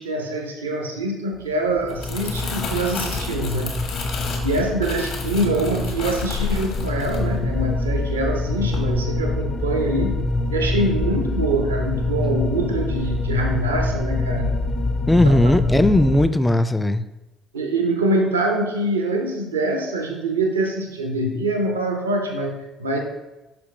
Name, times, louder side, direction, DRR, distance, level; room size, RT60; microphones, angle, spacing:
voice 1, 0.0-3.8 4.1-4.2 4.4-10.2 10.5-14.6 15.2-15.5 17.5-23.0, right 2 dB, 90° right, 3 dB, 0.7 m, -24 dB
Crumpling crinkling, 1.7-8.1 8.5-8.8, left 5 dB, 65° left, 1.4 m, -32 dB
sound 1, 1.7-16.3, left 2 dB, 40° left, 0.8 m, -25 dB
voice 2, 15.1-17.0, left 1 dB, 10° left, 12 dB, 0.4 m, -17 dB
5.9 x 5.6 x 3.2 m, 1.0 s
hypercardioid pair, 55°, 0 cm